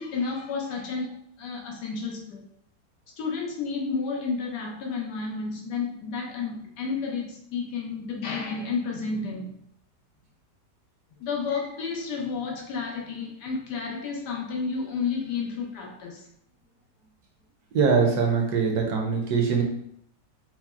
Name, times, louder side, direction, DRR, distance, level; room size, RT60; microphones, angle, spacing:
voice 1, 0.0-2.4 3.2-9.6 11.2-16.3, left 5 dB, 70° left, -1 dB, 1.3 m, -31 dB
voice 2, 17.7-19.6, right 5 dB, 70° right, 1 dB, 1.1 m, -22 dB
5.6 x 2.0 x 2.3 m, 0.68 s
omnidirectional pair, 1.9 m